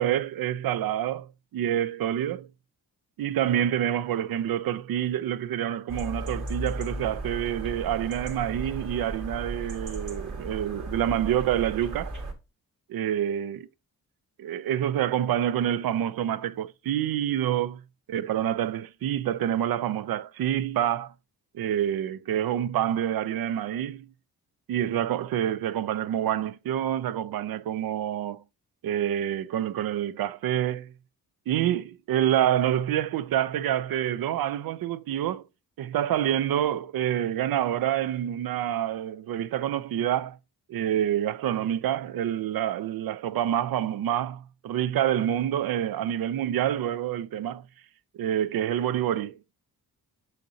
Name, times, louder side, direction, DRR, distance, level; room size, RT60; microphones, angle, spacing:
voice 1, 0.0-2.5 3.2-12.1 12.9-13.6 14.4-17.8 18.1-21.1 21.5-24.1 24.7-28.4 28.8-30.9 31.5-35.4 35.8-40.4 40.7-47.6 48.1-49.4, right 11 dB, 70° right, 0.5 m, -27 dB
sound 1, 5.9-12.3, right 2 dB, 50° right, 2.1 m, -36 dB
6.5 x 6.4 x 2.7 m
cardioid pair, 95°, 37 cm